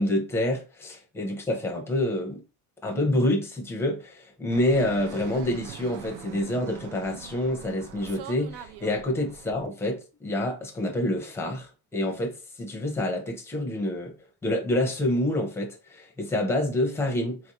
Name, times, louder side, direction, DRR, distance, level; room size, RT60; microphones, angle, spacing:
voice 1, 0.0-2.4 2.8-14.1 14.4-17.4, left 1 dB, 5° left, 0.5 m, -27 dB
Fixed-wing aircraft airplane, 4.5-9.7, right 9 dB, 80° right, 0.6 m, -43 dB
4.0 x 2.7 x 2.9 m
cardioid pair, 160°, 50 cm